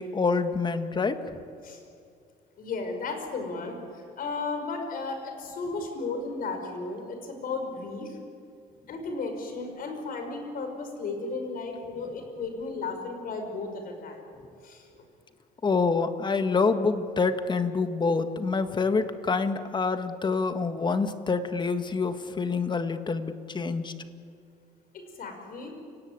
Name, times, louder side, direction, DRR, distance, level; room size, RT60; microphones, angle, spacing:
voice 1, 0.0-1.4 15.6-23.9, left 4 dB, 25° left, 9 dB, 1.7 m, -27 dB
voice 2, 2.6-8.2 8.9-14.2 14.6-14.9 25.2-25.7, left 3 dB, 55° left, 5 dB, 5.7 m, -34 dB
29.5 x 18.5 x 9.0 m, 2.4 s
cardioid pair, 110°, 17 cm